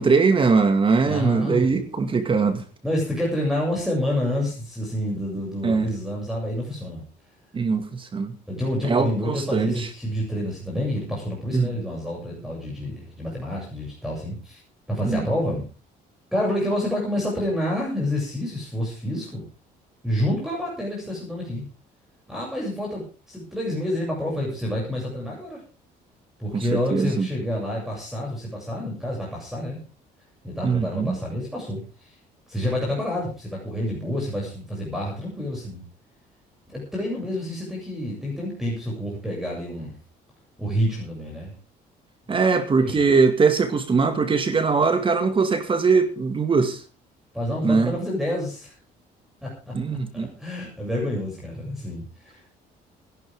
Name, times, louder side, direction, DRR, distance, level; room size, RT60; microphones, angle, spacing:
voice 1, 0.0-2.6 5.6-5.9 7.5-8.3 8.9-9.9 11.5-11.6 15.0-15.2 26.5-26.6 26.9-27.3 30.6-31.1 42.3-46.8 47.6-47.9 49.7-50.3, right 4 dB, 30° right, 2.1 m, -21 dB
voice 2, 1.0-1.7 2.8-7.0 8.5-14.6 14.9-15.6 16.3-19.5 20.0-21.7 22.3-25.6 26.4-29.8 30.4-32.1 32.5-35.8 36.7-39.9 40.6-41.5 42.8-43.1 47.3-48.7 49.4-49.7 50.1-52.5, left 1 dB, ahead, 7.5 m, -28 dB
21.0 x 11.5 x 3.7 m
cardioid pair, 110°, 17 cm